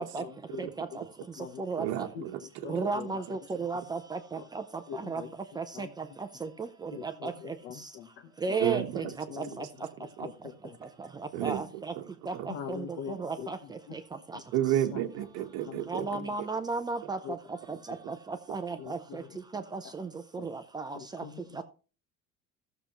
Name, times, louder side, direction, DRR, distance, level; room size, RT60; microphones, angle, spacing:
voice 1, 0.0-0.7 1.4-1.6 2.1-3.2 4.4-4.5 4.9-5.3 5.7-5.9 6.9-8.7 9.0-9.5 10.2-10.7 12.5-13.5 13.9-14.0 14.3-14.4 14.9-15.0 15.7-16.4 17.2-17.3 18.8-19.2 19.8-19.9 20.4-20.5 20.9-21.6, left 8 dB, 65° left, 7 dB, 1.1 m, -43 dB
voice 2, 0.6-2.1 2.7-5.2 5.6-7.9 8.4-9.7 10.2-10.3 10.8-11.9 12.3-14.4 15.9-19.2 19.5-21.2 21.5-21.6, right 4 dB, 15° right, 8 dB, 0.6 m, -36 dB
voice 3, 1.8-2.7 8.6-9.0 11.3-11.6 12.0-12.1 12.3-12.5 14.5-16.2, right 12 dB, 75° right, 3 dB, 1.2 m, -31 dB
15.5 x 6.8 x 3.0 m, 0.35 s
cardioid pair, 170°, 29 cm